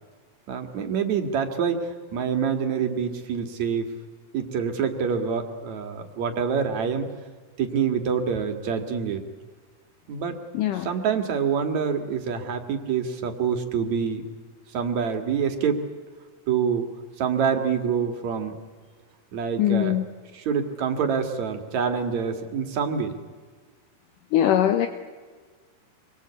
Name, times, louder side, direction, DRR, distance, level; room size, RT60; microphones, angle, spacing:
voice 1, 0.5-3.9 4.3-7.1 7.6-9.2 10.1-10.4 10.7-14.2 14.7-15.8 16.5-16.9 17.2-18.6 19.3-20.0 20.3-23.1, right 6 dB, 55° right, 6 dB, 3.1 m, -26 dB
voice 2, 10.5-10.9 19.6-20.0 24.3-24.9, left 11 dB, 70° left, 8 dB, 2.5 m, -21 dB
27.5 x 23.0 x 8.4 m, 1.5 s
omnidirectional pair, 4.2 m